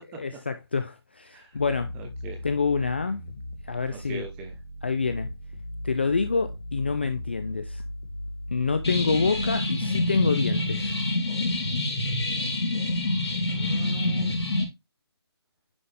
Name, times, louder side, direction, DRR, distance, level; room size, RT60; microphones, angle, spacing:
voice 1, 0.1-1.9 2.4-3.2 3.6-4.2 4.8-5.3 5.8-7.8 8.5-10.9, left 4 dB, 25° left, 0.3 m, -27 dB
sound 1, 1.5-9.5, left 1 dB, 55° left, 1.8 m, -37 dB
voice 2, 1.9-2.5 3.9-4.5 13.5-14.3, right 3 dB, 10° right, 0.8 m, -40 dB
sound 2, 8.8-14.6, left 2 dB, 75° left, 3.0 m, -26 dB
9.4 x 4.0 x 3.3 m
figure-of-eight pair, 165°, 14 cm